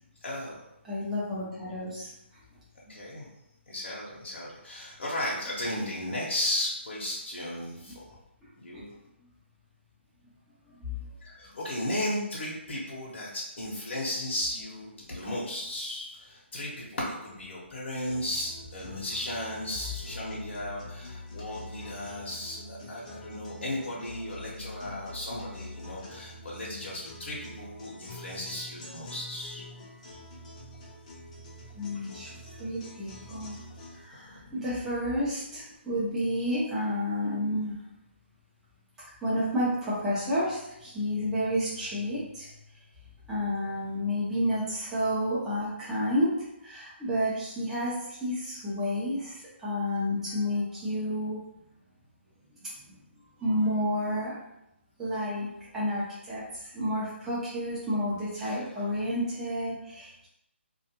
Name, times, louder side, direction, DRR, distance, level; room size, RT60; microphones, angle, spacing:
voice 1, 0.2-0.6 2.9-3.3 3.7-8.2 8.6-8.9 11.2-29.6 58.4-58.6, left 1 dB, 60° left, -5 dB, 0.8 m, -35 dB
voice 2, 0.8-2.1 10.8-11.0 31.7-32.3 32.6-33.6 34.0-37.8 39.2-42.5 43.3-46.3 46.6-51.4 53.4-54.3 55.0-56.4 56.7-60.3, equal, 5° right, -10 dB, 0.6 m, -30 dB
sound 1, 18.0-34.0, left 1 dB, 30° left, 0.6 m, -45 dB
2.4 x 2.3 x 2.9 m, 0.83 s
figure-of-eight pair, 155°, 7 cm